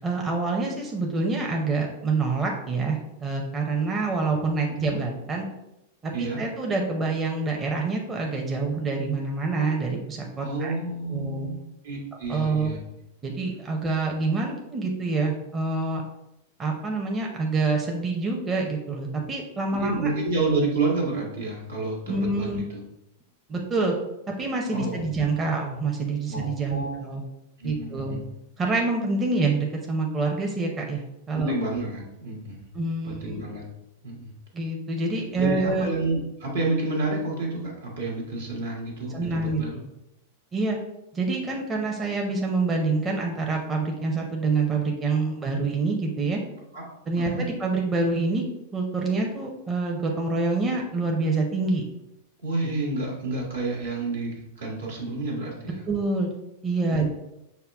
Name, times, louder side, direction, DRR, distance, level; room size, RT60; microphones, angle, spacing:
voice 1, 0.0-5.5 6.0-10.7 11.1-11.5 12.3-12.7 13.2-16.0 16.6-20.1 22.1-22.6 23.5-23.9 24.4-27.2 27.6-28.2 28.6-31.0 31.3-31.5 32.7-33.4 34.5-35.9 39.1-39.6 40.5-40.8 41.1-46.4 47.1-48.4 48.7-51.8 52.6-52.7 55.9-56.3 56.6-57.1, right 3 dB, 20° right, 0 dB, 0.7 m, -26 dB
voice 2, 10.4-12.8 19.7-22.8 24.7-25.1 26.3-27.0 27.6-28.2 31.3-32.6 33.0-33.7 34.0-34.3 35.3-39.8 46.7-46.8 47.2-47.5 52.4-55.9 56.9-57.1, right 2 dB, 80° right, -3 dB, 1.4 m, -30 dB
5.5 x 2.2 x 3.4 m, 0.88 s
hypercardioid pair, 110°, 0 cm